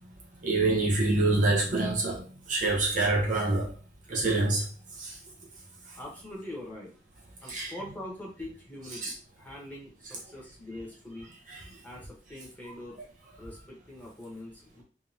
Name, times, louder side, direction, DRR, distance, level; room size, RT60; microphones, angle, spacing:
voice 1, 0.4-3.7 4.1-4.7 5.0-5.2 7.5-7.7 9.0-9.1 11.5-11.6, right 2 dB, 45° right, 1.1 m, -26 dB
voice 2, 6.0-7.0 7.4-11.3 11.8-13.0 13.4-14.8, left 1 dB, 10° left, 1.3 m, -43 dB
3.4 x 3.3 x 2.9 m
head